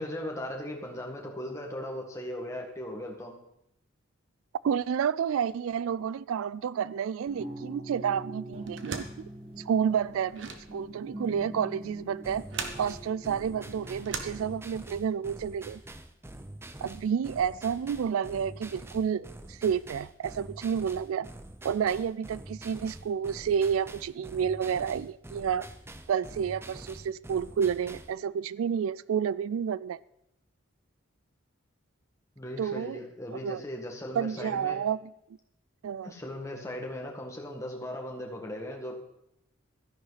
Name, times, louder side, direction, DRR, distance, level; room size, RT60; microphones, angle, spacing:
voice 1, 0.0-3.3 32.3-34.8 36.0-38.9, left 1 dB, 15° left, 1.8 m, -38 dB
voice 2, 4.6-9.1 9.6-12.4 12.8-15.8 16.8-21.3 21.6-25.7 26.1-30.0 32.6-33.0 33.3-33.6 34.1-35.0 35.8-36.1, right 7 dB, 80° right, 0.3 m, -30 dB
sound 1, 7.2-14.5, right 1 dB, 25° right, 1.9 m, -44 dB
sound 2, 8.6-15.0, right 5 dB, 60° right, 1.3 m, -41 dB
sound 3, 12.2-28.2, right 1 dB, 10° right, 0.5 m, -46 dB
13.5 x 10.5 x 4.1 m
head